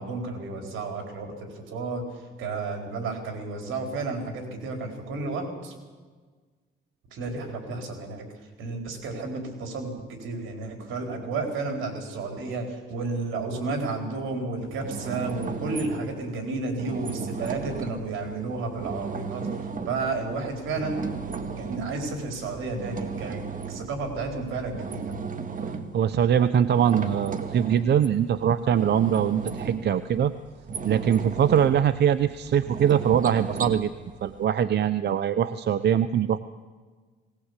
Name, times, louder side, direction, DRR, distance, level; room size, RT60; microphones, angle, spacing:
voice 1, 0.0-5.7 7.1-8.2 8.6-21.2 21.6-25.0, right 3 dB, 80° right, 4 dB, 4.6 m, -32 dB
sound 1, 14.6-34.4, right 5 dB, 45° right, 1.9 m, -36 dB
voice 2, 25.9-30.3 30.8-33.9 34.2-36.4, right 9 dB, 60° right, 12 dB, 0.8 m, -22 dB
19.0 x 19.0 x 8.3 m, 1.4 s
cardioid pair, 90°, 20 cm